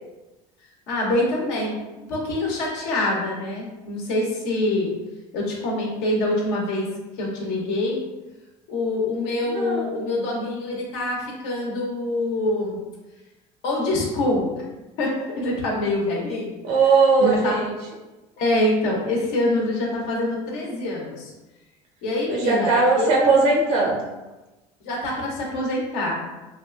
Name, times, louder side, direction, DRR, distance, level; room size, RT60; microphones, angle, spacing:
voice 1, 0.9-1.7 2.1-4.9 5.3-6.9 7.2-8.0 8.7-12.8 13.6-14.7 15.0-16.6 17.2-17.5 18.4-21.3 22.0-23.3 24.8-26.2, left 1 dB, 85° left, -2 dB, 0.7 m, -25 dB
voice 2, 9.4-9.9 16.6-17.7 22.3-24.1, right 4 dB, 85° right, -1 dB, 0.6 m, -19 dB
2.6 x 2.3 x 2.4 m, 1.1 s
supercardioid pair, 105°, 14 cm